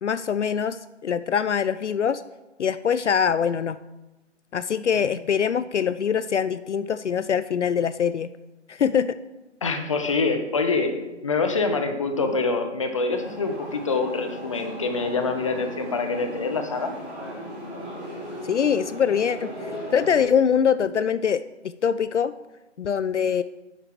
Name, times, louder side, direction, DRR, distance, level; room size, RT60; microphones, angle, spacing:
voice 1, 0.0-2.2 2.6-3.8 4.5-8.3 8.7-9.2 18.5-22.3 22.8-23.4, left 7 dB, 70° left, 14 dB, 0.5 m, -23 dB
voice 2, 9.6-16.9, left 4 dB, 25° left, 6 dB, 0.8 m, -25 dB
sound 1, 13.1-20.2, equal, 5° right, 1.4 m, -37 dB
10.0 x 6.7 x 4.5 m, 1.0 s
figure-of-eight pair, 155°, 36 cm